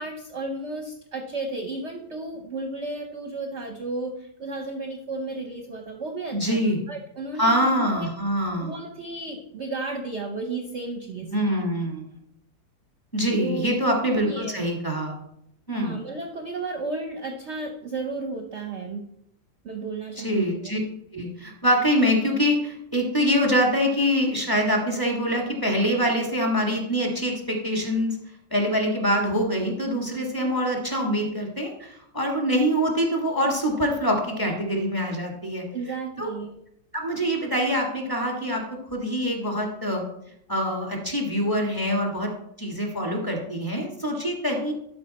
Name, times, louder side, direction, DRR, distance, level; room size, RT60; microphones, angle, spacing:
voice 1, 0.0-6.6 6.9-8.1 8.6-11.3 13.4-13.8 14.1-14.6 15.7-19.1 19.6-20.6 35.7-36.5, right 3 dB, 50° right, 4 dB, 0.9 m, -33 dB
voice 2, 6.3-6.8 7.3-8.7 11.3-12.1 13.1-15.1 15.7-16.0 20.2-20.8 21.1-28.1 28.5-35.6 36.2-36.3 36.9-40.0 40.5-42.3 42.6-44.7, equal, 15° left, 0 dB, 1.6 m, -24 dB
12.0 x 5.0 x 4.2 m, 0.76 s
omnidirectional pair, 1.8 m